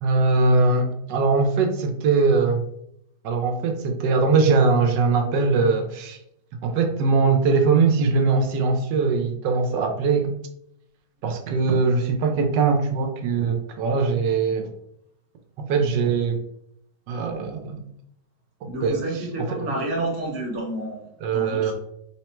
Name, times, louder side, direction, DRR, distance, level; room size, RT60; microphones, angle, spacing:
voice 1, 0.0-2.6 3.2-6.2 6.6-10.3 11.2-14.7 15.6-16.4 17.1-17.8 18.8-19.0 19.4-19.6 21.2-21.7, right 4 dB, 85° right, 4 dB, 1.3 m, -21 dB
voice 2, 18.6-21.7, right 1 dB, 40° right, -2 dB, 1.0 m, -30 dB
3.6 x 2.1 x 4.3 m, 0.76 s
omnidirectional pair, 1.8 m